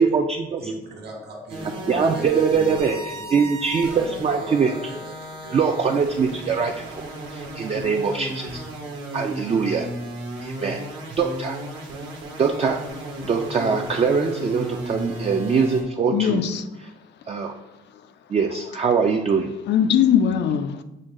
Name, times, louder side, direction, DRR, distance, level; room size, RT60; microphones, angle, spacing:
voice 1, 0.0-0.6 1.9-3.0 3.3-4.7 5.5-7.0 7.3-8.6 9.1-9.9 10.4-10.8 11.2-11.6 12.4-12.8 13.2-16.4 17.3-17.5 18.3-19.5, right 5 dB, 30° right, 0.3 m, -22 dB
voice 2, 0.6-5.6 6.4-6.9 8.7-9.0, right 2 dB, 55° right, 1.3 m, -40 dB
sound 1, 1.5-15.8, right 1 dB, 85° right, 1.2 m, -35 dB
voice 3, 16.1-16.6 19.7-20.8, left 8 dB, 60° left, 0.4 m, -20 dB
6.3 x 2.2 x 3.6 m
cardioid pair, 90°, 20 cm